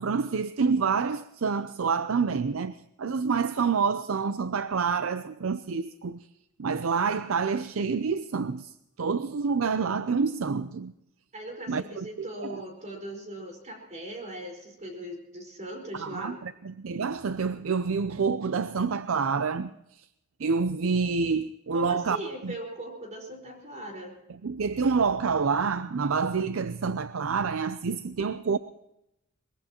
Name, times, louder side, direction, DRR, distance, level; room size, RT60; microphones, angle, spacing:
voice 1, 0.0-6.3 6.6-10.9 11.7-12.6 15.9-20.1 20.4-22.2 22.4-22.5 24.3-28.6, right 5 dB, 75° right, 0.6 m, -28 dB
voice 2, 11.3-16.4 21.7-24.1, right 1 dB, 35° right, 4.8 m, -39 dB
23.0 x 21.0 x 3.0 m
head